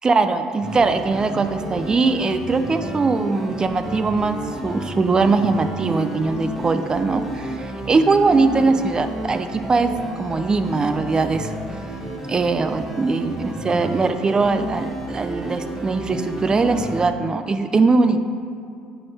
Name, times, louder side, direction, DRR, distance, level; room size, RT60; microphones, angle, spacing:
voice 1, 0.0-4.4 4.6-9.9 10.2-11.5 12.3-18.2, right 3 dB, 25° right, 8 dB, 0.5 m, -21 dB
sound 1, 0.6-17.1, right 1 dB, 5° right, 1.2 m, -32 dB
10.5 x 3.9 x 3.4 m, 2.4 s
supercardioid pair, 80°, 3 cm